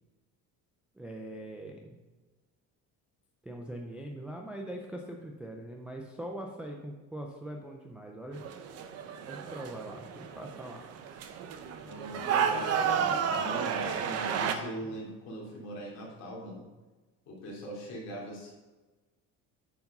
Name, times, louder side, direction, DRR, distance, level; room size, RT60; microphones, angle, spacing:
voice 1, 1.0-2.0 3.4-8.4 9.3-10.9, right 1 dB, 5° right, 1 dB, 0.3 m, -42 dB
sound 1, 8.3-14.5, right 7 dB, 45° right, 0.7 m, -32 dB
voice 2, 11.9-16.7 17.3-18.5, right 1 dB, 45° left, -4 dB, 2.9 m, -41 dB
9.2 x 4.8 x 5.4 m, 1.2 s
cardioid pair, 175°, 35 cm